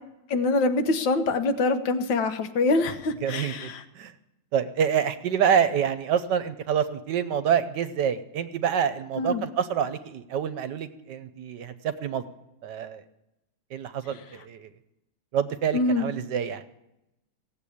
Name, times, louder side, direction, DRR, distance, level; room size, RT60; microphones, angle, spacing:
voice 1, 0.3-3.7 9.2-9.4 15.7-16.1, left 3 dB, 80° left, 8 dB, 1.7 m, -24 dB
voice 2, 3.2-4.1 4.5-12.2 12.6-13.0 13.7-14.7 15.3-16.6, right 8 dB, 70° right, 12 dB, 1.3 m, -27 dB
16.5 x 7.8 x 8.5 m, 0.90 s
omnidirectional pair, 2.0 m